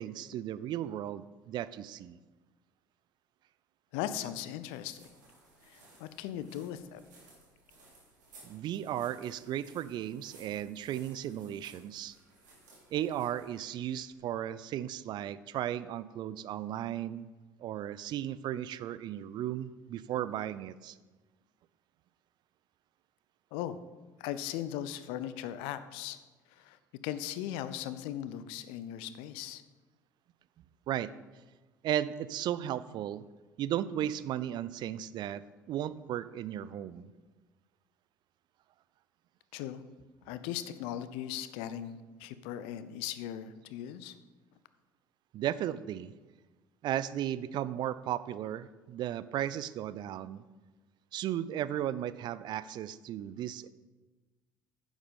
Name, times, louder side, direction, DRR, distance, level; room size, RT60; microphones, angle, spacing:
voice 1, 0.0-2.2 8.4-12.1 12.9-17.3 17.6-21.0 30.9-31.1 31.8-33.2 33.6-35.4 35.7-37.1 45.3-46.2 46.8-50.4 51.1-53.7, right 11 dB, 45° right, 16 dB, 0.5 m, -35 dB
voice 2, 3.9-5.1 5.6-7.0 23.5-23.8 24.2-26.2 26.5-26.8 27.0-29.6 39.5-39.8 40.3-44.2, left 11 dB, 60° left, 13 dB, 0.7 m, -38 dB
sound 1, 4.4-14.3, right 2 dB, 75° right, 3.1 m, -60 dB
10.0 x 7.3 x 5.4 m, 1.2 s
figure-of-eight pair, 60°, 10 cm